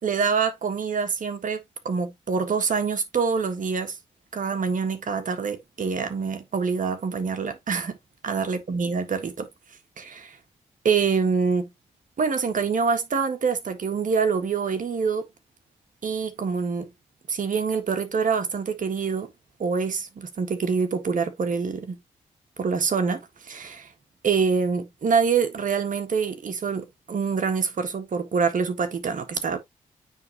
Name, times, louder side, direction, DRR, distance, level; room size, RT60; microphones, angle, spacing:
voice 1, 0.0-1.6 1.8-3.9 4.3-8.0 8.2-9.5 10.0-10.4 10.8-11.7 12.2-15.2 16.0-16.8 17.3-19.3 19.6-22.0 22.6-23.9 24.2-29.6, right 5 dB, 65° right, 1.6 m, -25 dB
9.1 x 3.8 x 3.0 m
supercardioid pair, 45°, 15 cm